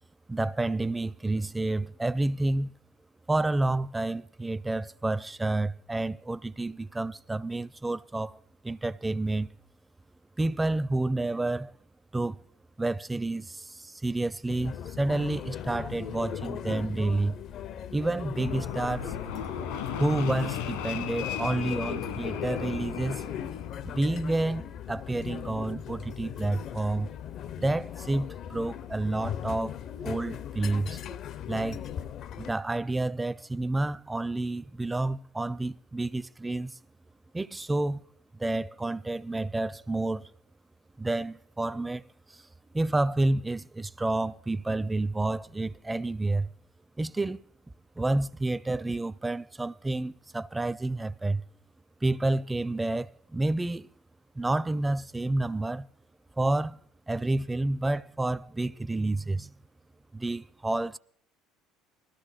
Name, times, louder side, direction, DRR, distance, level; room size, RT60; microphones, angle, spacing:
voice 1, 0.3-2.7 3.3-9.5 10.4-11.7 12.1-12.4 12.8-17.4 17.9-19.2 20.0-23.2 23.8-27.1 27.6-29.8 30.0-31.0 31.5-31.8 32.4-36.8 37.3-38.0 38.3-40.3 41.0-42.4 42.7-46.5 47.0-47.4 48.0-51.4 52.0-53.9 54.4-55.9 56.4-56.8 57.1-59.5 60.1-61.0, right 2 dB, 15° right, 0.5 m, -29 dB
sound 1, 14.5-32.5, left 9 dB, 55° left, 0.6 m, -38 dB
Fixed-wing aircraft airplane, 18.3-24.0, left 8 dB, 75° left, 1.5 m, -36 dB
20.0 x 13.0 x 4.1 m
hypercardioid pair, 70°, 0 cm